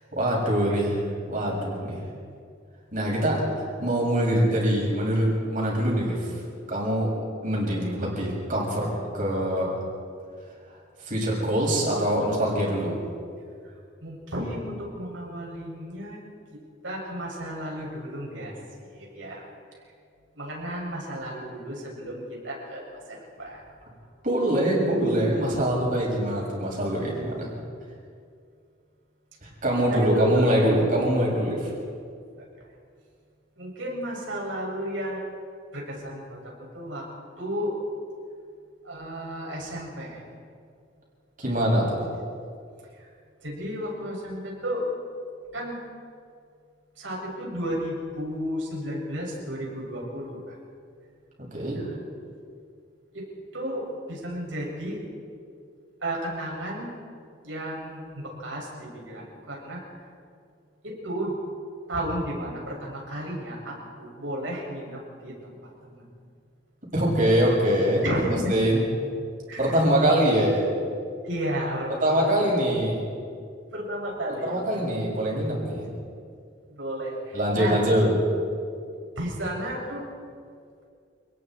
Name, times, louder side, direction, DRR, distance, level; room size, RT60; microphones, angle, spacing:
voice 1, 0.1-1.0 1.3-2.0 2.9-6.3 6.7-7.1 7.4-8.9 9.1-9.7 11.0-13.0 24.2-27.5 29.4-31.7 41.4-42.0 51.5-51.9 66.9-68.0 68.5-68.8 69.6-70.7 72.0-73.0 74.4-75.9 77.3-78.2, right 1 dB, 45° right, -3 dB, 7.5 m, -24 dB
voice 2, 14.0-16.2 16.8-18.5 18.8-19.4 20.3-23.6 29.9-30.6 33.6-35.2 35.7-37.0 37.4-37.7 38.8-40.2 43.0-43.1 43.4-44.8 45.5-45.7 47.0-50.5 51.7-52.0 53.5-55.0 56.0-56.9 57.4-59.8 60.8-61.4 61.9-65.5 65.8-66.0 68.0-68.5 69.5-69.8 71.2-72.5 73.7-74.7 76.7-77.8 79.2-80.1, equal, 85° right, -2 dB, 7.6 m, -33 dB
30.0 x 20.0 x 4.7 m, 2.2 s
head